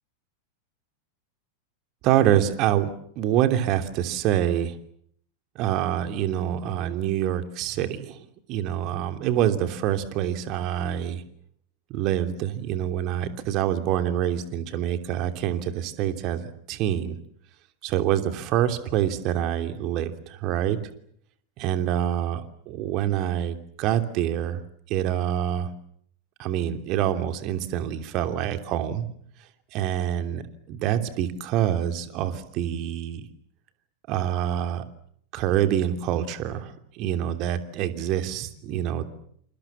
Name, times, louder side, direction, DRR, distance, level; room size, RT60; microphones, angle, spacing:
voice 1, 2.0-4.8 5.5-8.2 8.5-11.2 11.9-17.2 17.8-20.8 21.6-24.6 24.9-25.7 26.4-29.1 29.7-30.4 30.7-33.3 34.1-34.8 35.3-39.0, right 11 dB, 40° right, 8 dB, 3.0 m, -26 dB
28.5 x 28.0 x 7.4 m, 0.67 s
figure-of-eight pair, 90°, 0 cm